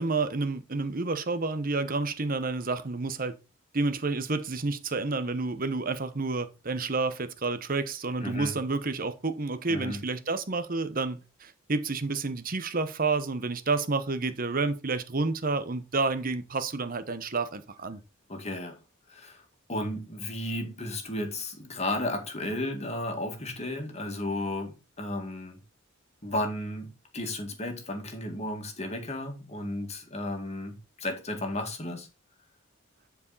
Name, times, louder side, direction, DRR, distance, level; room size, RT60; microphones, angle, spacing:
voice 1, 0.0-3.4 3.7-18.0, right 3 dB, 45° right, 1.0 m, -30 dB
voice 2, 8.2-8.6 9.7-10.0 18.3-18.8 19.1-19.4 19.7-25.6 26.2-32.1, left 1 dB, 30° left, 2.1 m, -34 dB
10.5 x 4.9 x 4.1 m
head